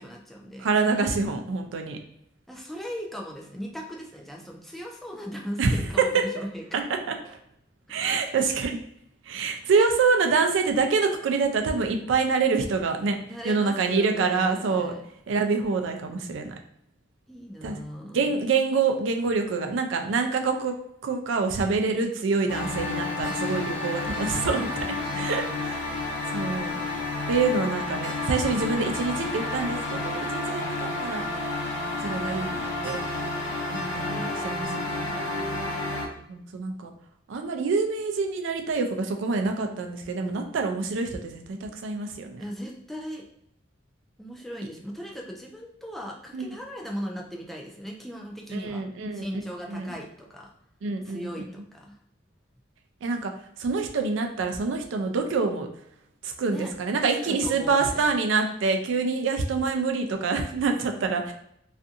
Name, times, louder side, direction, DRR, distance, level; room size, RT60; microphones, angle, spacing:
voice 1, 0.0-0.7 2.5-6.6 9.7-9.9 13.2-15.0 17.3-18.3 23.9-25.3 33.7-34.3 42.4-43.2 44.2-48.8 49.1-50.5 51.0-51.9 56.5-56.7 57.2-58.1, equal, ahead, -1 dB, 0.3 m, -38 dB
voice 2, 0.6-2.0 5.6-6.0 7.1-7.4 7.9-8.8 9.3-13.2 13.4-14.9 15.3-16.5 17.6-17.8 18.1-20.7 21.0-26.0 26.3-26.8 27.3-31.2 32.0-33.0 33.7-35.3 36.2-36.9 37.3-42.4 46.3-46.5 48.5-49.3 49.7-49.9 50.8-51.3 53.0-53.3 53.6-55.7 56.2-61.3, right 4 dB, 80° right, 5 dB, 0.4 m, -26 dB
sound 1, 22.5-36.1, left 2 dB, 80° left, 0.6 m, -30 dB
2.6 x 2.4 x 2.4 m, 0.73 s
head